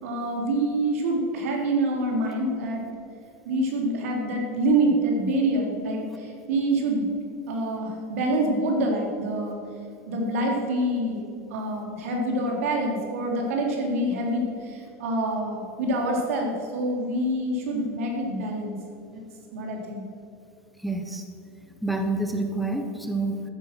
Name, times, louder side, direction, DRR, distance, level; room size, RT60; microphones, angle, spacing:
voice 1, 0.0-2.8 3.4-7.1 7.5-9.6 10.1-11.2 11.5-18.7 19.1-19.2 19.5-20.0, right 1 dB, 85° right, 0 dB, 3.9 m, -26 dB
voice 2, 20.8-21.2 21.8-23.4, right 2 dB, ahead, 4 dB, 0.9 m, -28 dB
14.0 x 10.0 x 6.3 m, 2.6 s
supercardioid pair, 165°, 7 cm